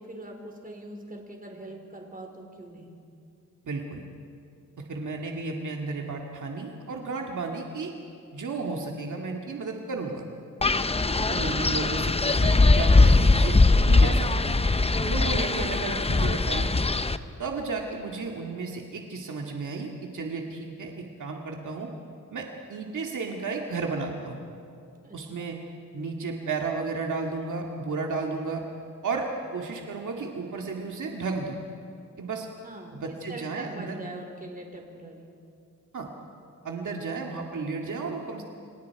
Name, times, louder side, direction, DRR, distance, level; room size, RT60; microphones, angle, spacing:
voice 1, 0.0-2.9 25.0-25.5 32.6-33.0 33.3-35.3, right 2 dB, 25° right, 2 dB, 4.2 m, -42 dB
voice 2, 3.6-4.1 4.9-7.9 8.3-10.3 11.3-14.7 15.0-16.7 17.4-21.9 22.3-24.4 25.1-25.6 25.9-28.6 29.0-31.6 32.2-32.5 32.9-34.0 35.9-36.1 36.6-38.4, right 4 dB, 65° right, 1 dB, 2.1 m, -33 dB
Wind, 10.6-17.2, left 3 dB, 20° left, 0.8 m, -21 dB
29.5 x 25.5 x 4.7 m, 2.5 s
cardioid pair, 85°, 32 cm